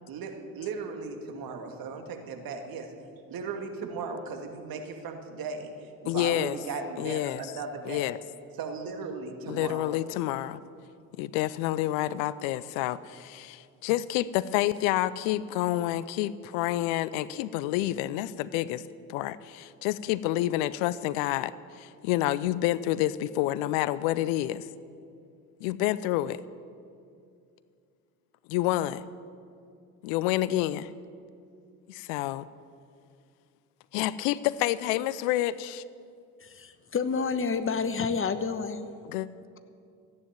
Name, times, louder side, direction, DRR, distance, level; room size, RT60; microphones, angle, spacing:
voice 1, 0.1-2.9 3.3-8.0 8.6-9.9, right 4 dB, 50° right, 4 dB, 2.2 m, -37 dB
voice 2, 6.1-6.6 7.0-7.4 7.8-8.2 9.5-10.6 11.2-18.8 19.1-24.7 25.6-26.4 28.5-29.0 30.0-30.9 31.9-32.5 33.9-35.8 39.1-39.3, left 14 dB, 65° left, 18 dB, 0.6 m, -28 dB
voice 3, 36.4-38.9, left 5 dB, 30° left, 11 dB, 1.1 m, -29 dB
15.0 x 9.5 x 8.8 m, 2.4 s
hypercardioid pair, 65°, 44 cm